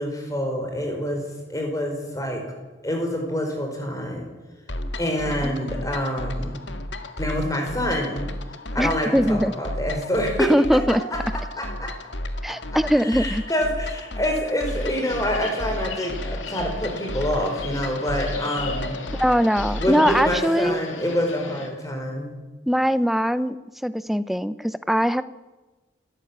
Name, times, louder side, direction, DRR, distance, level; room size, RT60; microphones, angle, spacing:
voice 1, 0.0-2.4 2.8-4.3 5.0-6.6 7.2-8.2 8.7-10.8 11.1-11.2 11.6-11.9 13.0-19.0 19.8-22.4, equal, 15° left, 2 dB, 4.9 m, -26 dB
sound 1, 4.7-20.6, left 1 dB, 70° left, 1.7 m, -33 dB
voice 2, 8.8-9.5 10.4-11.0 12.4-13.4 19.1-20.8 22.7-23.6 23.8-25.2, equal, ahead, 14 dB, 0.6 m, -21 dB
sound 2, 14.7-21.7, left 4 dB, 85° left, 3.1 m, -37 dB
26.0 x 14.5 x 8.8 m, 1.2 s
head